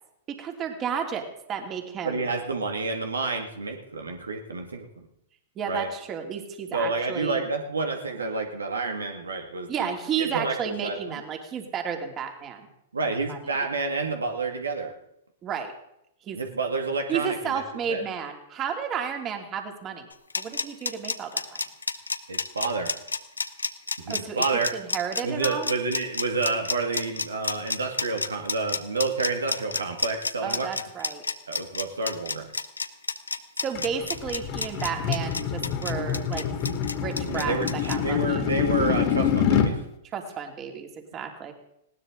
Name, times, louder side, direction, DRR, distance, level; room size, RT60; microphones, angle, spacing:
voice 1, 0.3-2.2 5.6-7.4 9.7-12.7 13.3-13.4 15.4-15.7 16.3-16.4 17.1-20.1 20.4-21.6 24.1-24.4 24.7-25.7 30.4-31.2 33.6-36.4 37.0-37.6 37.9-38.4 40.1-41.5, right 7 dB, 30° right, 4 dB, 2.9 m, -32 dB
voice 2, 2.1-5.1 5.7-5.9 6.7-11.2 12.9-14.9 16.3-17.6 17.9-18.0 22.3-22.9 24.0-24.7 25.2-30.7 31.5-32.5 36.6-36.8 37.2-39.8, right 3 dB, 85° right, 4 dB, 2.2 m, -29 dB
sound 1, 20.1-38.0, left 4 dB, 90° left, 1.0 m, -30 dB
sound 2, 33.7-39.7, left 8 dB, 45° left, 2.4 m, -26 dB
19.5 x 18.0 x 3.9 m, 0.80 s
figure-of-eight pair, 105°, 0 cm